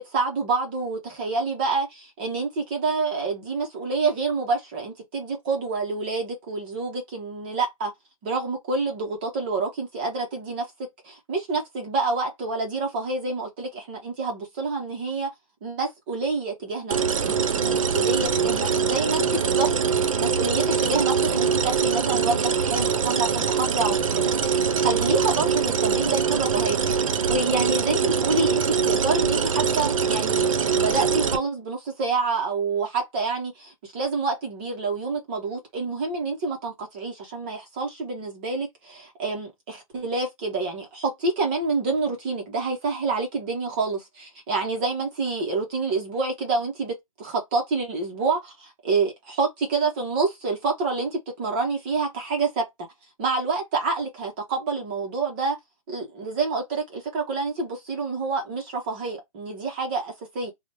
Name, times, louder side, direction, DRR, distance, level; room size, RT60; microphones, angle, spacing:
voice 1, 0.0-7.9 8.2-10.7 11.0-15.3 15.6-26.8 27.2-52.6 53.2-55.6 55.9-60.5, right 4 dB, 20° right, 0.6 m, -27 dB
sound 1, 16.9-31.4, right 6 dB, 65° right, 0.6 m, -23 dB
3.3 x 2.0 x 4.0 m
hypercardioid pair, 165°, 18 cm